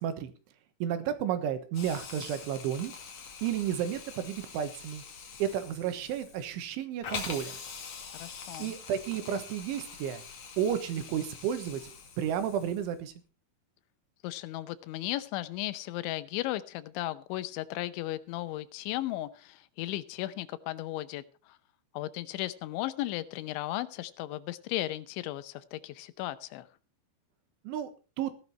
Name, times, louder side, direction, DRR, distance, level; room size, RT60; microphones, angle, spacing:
voice 1, 0.8-2.9 3.4-5.0 5.4-7.5 8.6-10.2 10.6-11.9 12.2-13.1 27.7-27.9 28.2-28.3, right 9 dB, 90° right, 10 dB, 3.8 m, -32 dB
Hiss, 1.7-13.0, left 6 dB, 45° left, 2.6 m, -44 dB
voice 2, 8.1-8.8 14.2-21.6 21.9-26.7, left 15 dB, 80° left, 14 dB, 3.1 m, -35 dB
16.0 x 11.5 x 4.4 m, 0.34 s
omnidirectional pair, 5.4 m